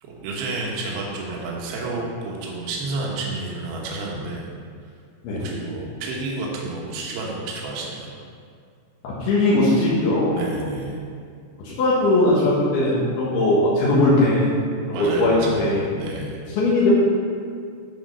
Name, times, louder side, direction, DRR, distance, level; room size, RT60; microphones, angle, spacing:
voice 1, 0.0-4.5 5.3-8.1 10.3-11.0 14.9-16.4, right 2 dB, 75° right, -2 dB, 3.1 m, -30 dB
voice 2, 9.0-10.4 11.6-14.5 14.9-15.8 16.6-16.9, left 2 dB, 80° left, -8 dB, 3.4 m, -19 dB
11.5 x 4.4 x 5.5 m, 2.2 s
omnidirectional pair, 4.6 m